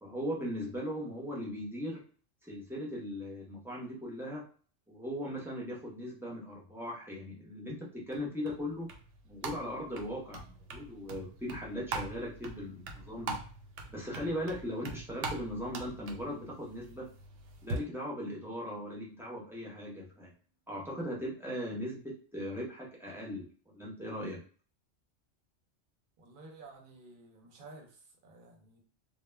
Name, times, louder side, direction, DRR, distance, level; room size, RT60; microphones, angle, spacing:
voice 1, 0.0-2.0 2.4-4.5 4.9-8.9 9.2-13.4 13.9-17.1 17.6-20.3 20.7-24.4, equal, 5° right, -4 dB, 0.5 m, -39 dB
sound 1, 8.1-17.8, right 3 dB, 90° right, 0.9 m, -43 dB
voice 2, 26.2-28.8, right 3 dB, 50° right, 1 dB, 0.8 m, -53 dB
2.1 x 2.1 x 3.2 m, 0.42 s
omnidirectional pair, 1.2 m